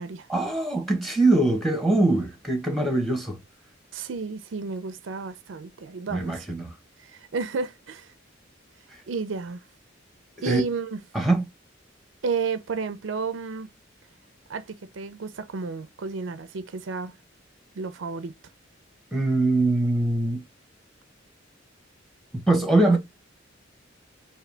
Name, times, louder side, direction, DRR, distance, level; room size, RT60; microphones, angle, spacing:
voice 1, 0.3-3.4 6.1-6.7 10.4-10.6 11.1-11.4 19.1-20.4 22.3-23.0, right 2 dB, ahead, 0.9 m, -22 dB
voice 2, 3.9-6.5 7.0-8.1 9.1-9.6 10.4-11.0 12.2-13.7 14.5-17.1 17.8-18.3, right 4 dB, 70° right, 0.5 m, -32 dB
3.7 x 2.7 x 3.3 m
head